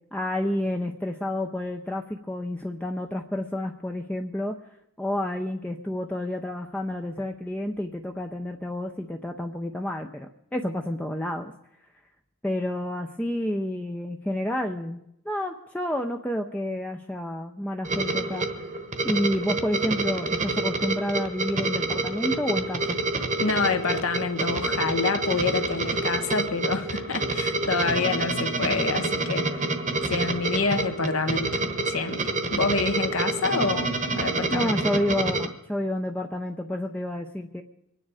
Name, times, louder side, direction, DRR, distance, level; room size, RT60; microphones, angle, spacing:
voice 1, 0.1-4.6 5.0-11.5 12.4-18.5 19.0-23.0 34.5-37.6, left 1 dB, 5° left, 0.5 m, -29 dB
sound 1, 17.9-35.5, right 2 dB, 35° right, 1.1 m, -28 dB
voice 2, 23.4-29.7 30.0-34.8, left 4 dB, 75° left, 1.4 m, -27 dB
24.5 x 9.8 x 4.9 m
head